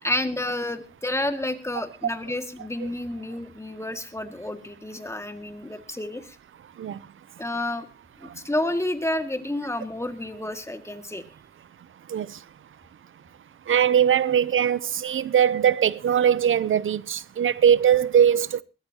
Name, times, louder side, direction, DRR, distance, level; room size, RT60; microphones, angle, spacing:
voice 1, 0.0-6.4 7.4-7.9 8.2-11.2, left 1 dB, 15° left, 2.0 m, -30 dB
voice 2, 13.7-18.6, right 9 dB, 80° right, 0.6 m, -21 dB
20.5 x 14.0 x 2.9 m
cardioid pair, 75°, 21 cm